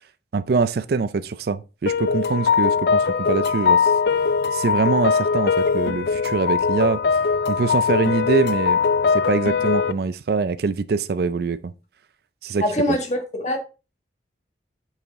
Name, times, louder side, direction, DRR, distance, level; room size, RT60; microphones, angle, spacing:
voice 1, 0.3-3.9 4.5-7.0 7.5-8.8 9.1-11.7 12.4-13.0, right 4 dB, 55° right, 0.4 m, -23 dB
sound 1, 1.9-9.9, left 5 dB, 60° left, 0.4 m, -21 dB
voice 2, 12.6-13.6, equal, 40° left, 1.6 m, -23 dB
7.8 x 5.0 x 3.5 m
head